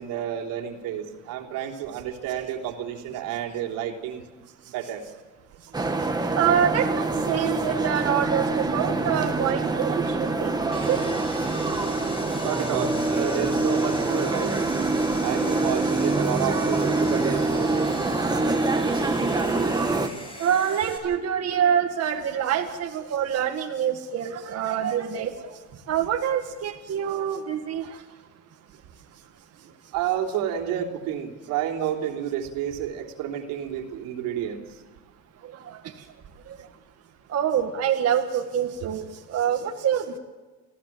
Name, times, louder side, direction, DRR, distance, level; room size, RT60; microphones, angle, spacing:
voice 1, 0.0-4.3 4.7-5.0 12.4-17.9 29.9-34.6, right 9 dB, 80° right, 1 dB, 3.3 m, -30 dB
sound 1, 5.7-20.1, right 3 dB, 10° right, 1.8 m, -25 dB
voice 2, 6.2-11.0 20.4-25.5 25.9-28.0 35.5-35.8 37.3-40.2, right 9 dB, 45° right, 2 dB, 1.9 m, -26 dB
Sawing, 10.7-21.0, left 1 dB, 15° left, 6.5 m, -40 dB
28.0 x 16.0 x 7.5 m, 1.3 s
cardioid pair, 125°, 34 cm